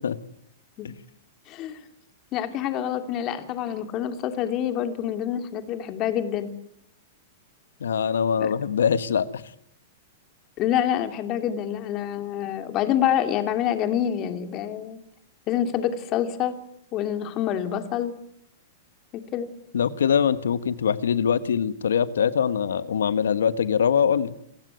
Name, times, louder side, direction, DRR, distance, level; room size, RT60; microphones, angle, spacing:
voice 1, 1.5-1.8 2.3-6.5 8.4-8.5 10.6-15.0 15.5-16.5 16.9-18.1 19.3-19.5, left 10 dB, 40° left, 8 dB, 2.6 m, -26 dB
voice 2, 7.8-9.4 19.7-24.3, left 7 dB, 75° left, 14 dB, 1.4 m, -23 dB
28.0 x 15.5 x 9.4 m, 0.74 s
hypercardioid pair, 105°, 0 cm